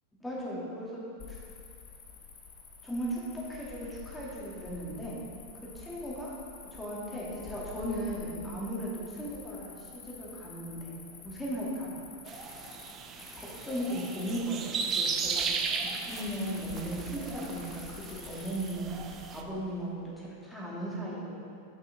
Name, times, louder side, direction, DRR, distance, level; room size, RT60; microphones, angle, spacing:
voice 1, 0.2-1.0 1.3-1.4 2.8-5.2 5.7-6.3 6.7-11.9 13.4-15.5 15.8-18.9 19.3-21.3, right 1 dB, 5° left, -6 dB, 2.0 m, -37 dB
Cricket, 1.2-20.1, left 6 dB, 35° left, 0.9 m, -49 dB
sound 1, 12.3-19.4, right 5 dB, 30° right, 0.6 m, -36 dB
8.9 x 5.6 x 3.8 m, 2.4 s
figure-of-eight pair, 90°, 0 cm